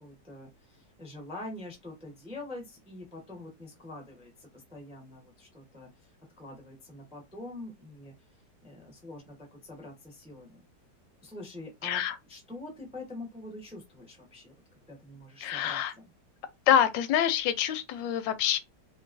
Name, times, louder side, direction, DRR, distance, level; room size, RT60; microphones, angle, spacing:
voice 1, 0.0-6.1 6.4-8.1 8.6-10.6 11.2-14.5 14.9-16.1, left 2 dB, 5° right, 0.5 m, -45 dB
voice 2, 11.8-12.1 15.4-15.9 16.7-18.6, left 10 dB, 85° left, 1.3 m, -26 dB
2.9 x 2.8 x 2.5 m
omnidirectional pair, 1.9 m